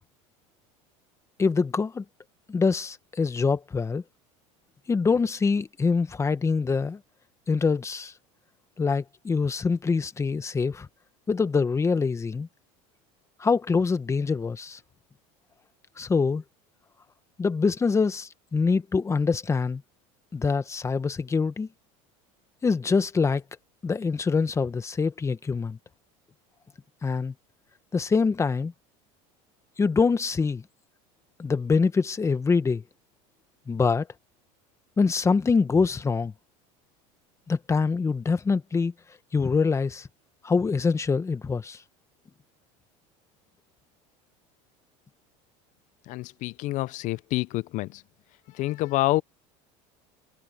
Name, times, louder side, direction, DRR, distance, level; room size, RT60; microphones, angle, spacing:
voice 1, 1.4-2.0 2.5-4.0 4.9-7.0 7.5-8.1 8.8-10.9 11.3-12.5 13.4-14.8 16.0-16.4 17.4-19.8 20.3-21.7 22.6-23.4 23.8-25.8 27.0-27.3 27.9-28.7 29.8-30.6 31.4-32.8 33.7-34.1 35.0-36.3 37.5-38.9 39.3-40.1 40.4-41.8, left 4 dB, 20° left, 1.3 m, -24 dB
voice 2, 46.1-48.0 48.5-49.2, left 18 dB, 50° left, 0.5 m, -27 dB
supercardioid pair, 120°, 16 cm